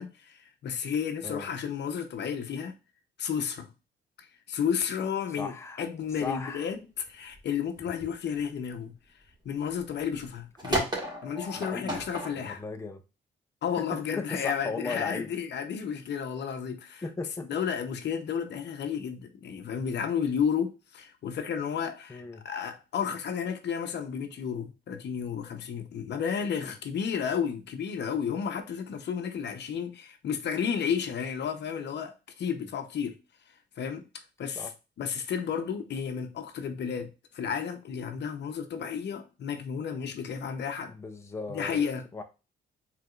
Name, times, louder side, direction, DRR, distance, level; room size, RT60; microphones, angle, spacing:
voice 1, 0.0-2.7 3.2-3.7 4.2-9.0 9.4-10.9 11.2-12.6 13.6-17.0 17.5-33.2 33.8-34.0 34.4-34.7 35.0-40.9 41.5-42.0, left 7 dB, 60° left, 0.8 m, -32 dB
voice 2, 5.4-5.8 6.2-6.7 11.5-12.0 12.4-13.0 13.8-15.3 17.0-17.5 22.1-22.4 34.6-34.7 40.9-41.8 42.1-42.2, left 4 dB, 15° left, 0.7 m, -36 dB
sound 1, 6.2-6.5 7.0-8.4 8.7-8.8 9.2-9.3 9.6-10.3 10.6-12.3, right 1 dB, 20° right, 1.9 m, -33 dB
4.8 x 3.5 x 2.5 m
cardioid pair, 90°, 20 cm